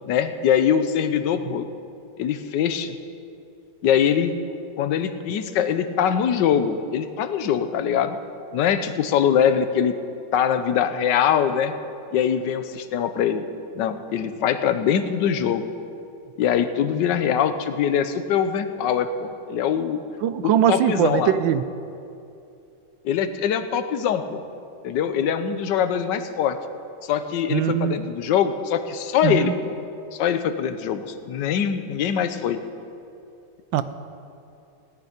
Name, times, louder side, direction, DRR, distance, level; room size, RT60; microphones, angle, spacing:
voice 1, 0.0-1.7 2.2-3.0 3.8-4.3 4.8-8.2 8.5-9.9 10.3-11.7 12.1-13.4 13.7-15.7 16.4-20.0 20.4-21.4 23.0-24.4 24.8-26.6 27.0-29.7 30.1-32.6, left 8 dB, 70° left, 10 dB, 1.4 m, -23 dB
voice 2, 20.2-21.6 27.5-28.1 29.2-29.5 33.7-33.8, right 10 dB, 85° right, 12 dB, 1.4 m, -21 dB
17.0 x 6.8 x 9.8 m, 2.6 s
omnidirectional pair, 2.0 m